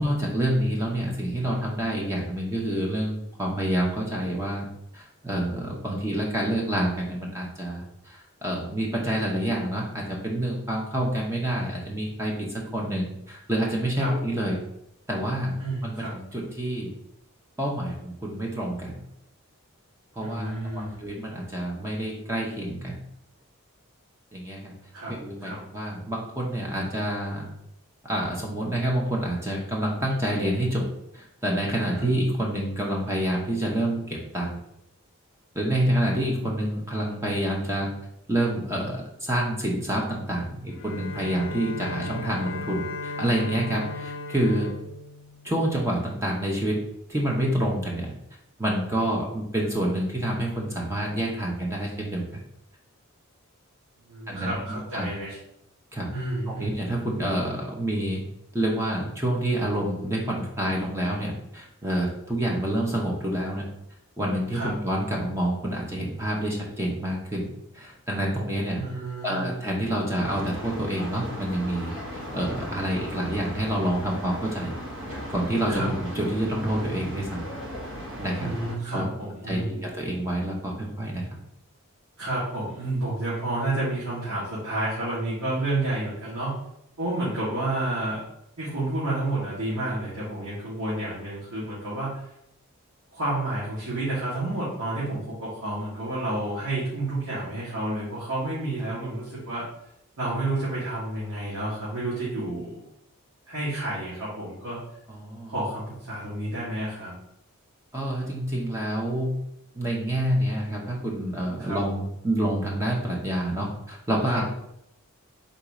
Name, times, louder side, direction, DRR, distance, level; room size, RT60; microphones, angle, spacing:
voice 1, 0.0-4.7 4.9-14.6 15.1-16.9 17.6-18.9 20.1-23.0 24.3-24.7 25.2-27.5 28.0-30.9 31.1-34.6 35.5-37.9 38.3-44.7 45.4-46.8 47.1-48.1 48.6-52.4 54.3-55.1 55.9-56.1 56.5-58.2 58.5-63.7 64.2-68.8 69.2-74.7 75.3-77.5 78.2-78.5 78.9-79.1 79.5-81.2 105.1-105.5 107.9-109.3 109.7-114.5, right 1 dB, 10° right, -2 dB, 0.7 m, -28 dB
voice 2, 15.6-16.1 20.2-21.0 24.9-25.1 25.4-25.6 32.0-32.1 54.1-55.4 56.1-56.7 64.5-64.7 68.8-69.5 75.7-75.9 78.4-79.8 82.2-86.5 87.0-88.2 88.6-92.1 93.1-99.7 100.2-102.8 103.5-104.8 105.5-107.1 111.6-111.8 114.2-114.5, right 2 dB, 90° right, -10 dB, 1.6 m, -30 dB
Bowed string instrument, 40.7-45.9, left 3 dB, 60° left, 0.5 m, -37 dB
sound 1, 70.2-78.8, equal, 60° right, 1.0 m, -37 dB
4.0 x 2.7 x 4.7 m, 0.78 s
head